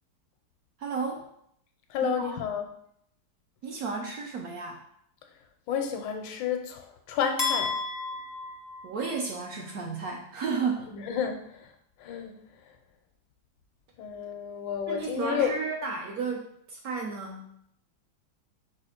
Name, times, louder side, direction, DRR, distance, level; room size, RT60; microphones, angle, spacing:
voice 1, 0.8-1.2 2.0-2.4 3.6-4.8 8.8-10.9 14.9-17.5, right 5 dB, 70° right, 1 dB, 0.9 m, -33 dB
voice 2, 1.9-2.7 5.7-7.7 10.9-11.7 12.0-12.3 14.0-15.6, left 7 dB, 85° left, 5 dB, 1.3 m, -31 dB
sound 1, 7.4-9.5, left 4 dB, 25° left, 0.4 m, -32 dB
4.9 x 2.4 x 4.3 m, 0.71 s
omnidirectional pair, 2.0 m